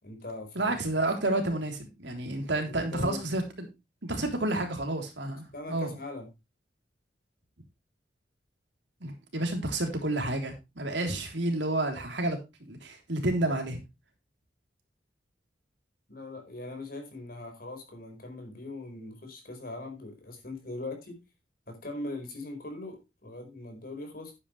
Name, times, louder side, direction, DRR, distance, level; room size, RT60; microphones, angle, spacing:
voice 1, 0.0-0.8 2.6-3.3 4.1-4.2 4.5-4.6 5.5-6.3 16.1-21.1 21.7-24.3, left 2 dB, 55° left, 4 dB, 4.9 m, -41 dB
voice 2, 0.6-3.7 4.0-5.9 9.0-12.4 12.7-13.8, right 2 dB, 70° right, 4 dB, 3.4 m, -30 dB
11.0 x 10.0 x 3.2 m, 0.25 s
head